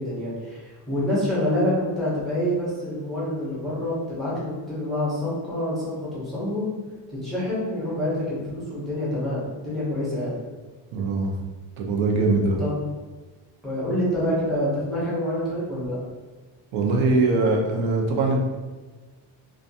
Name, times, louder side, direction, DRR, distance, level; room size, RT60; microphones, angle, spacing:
voice 1, 0.0-6.7 7.1-10.4 12.6-12.7 13.6-16.0, left 1 dB, ahead, -8 dB, 0.5 m, -27 dB
voice 2, 10.9-11.3 11.8-12.6 16.7-18.4, right 3 dB, 80° right, 0 dB, 0.6 m, -22 dB
2.4 x 2.2 x 2.6 m, 1.3 s
cardioid pair, 180°, 46 cm